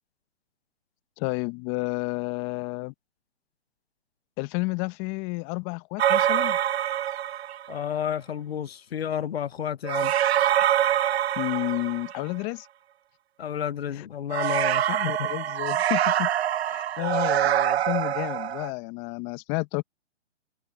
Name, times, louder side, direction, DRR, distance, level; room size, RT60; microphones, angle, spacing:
voice 1, 1.2-2.9 4.4-6.6 11.4-12.7 14.9-16.3 16.6-19.8, left 27 dB, 20° left, 0.9 m, -31 dB
sound 1, 6.0-7.7 9.8-12.4 14.3-18.7, right 11 dB, 65° right, 0.5 m, -25 dB
voice 2, 7.7-10.1 13.4-15.3 16.9-17.0, left 9 dB, 60° left, 0.8 m, -31 dB
hypercardioid pair, 140°, 34 cm